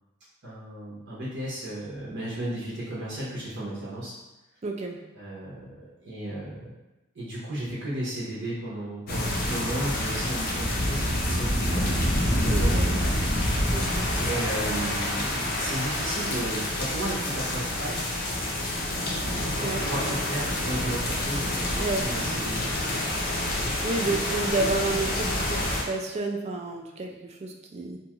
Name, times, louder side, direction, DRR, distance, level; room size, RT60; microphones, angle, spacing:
voice 1, 0.4-4.1 5.1-6.7 7.1-12.0 12.4-12.8 14.2-18.0 19.5-22.7 23.6-24.1, right 1 dB, 60° right, -8 dB, 0.8 m, -34 dB
voice 2, 4.6-5.0 12.5-13.0 13.7-14.2 19.6-19.8 21.8-22.1 23.8-28.0, right 2 dB, 30° right, 2 dB, 0.3 m, -30 dB
sound 1, 9.1-25.8, left 1 dB, 45° left, 0.5 m, -27 dB
2.7 x 2.3 x 2.9 m, 1.0 s
head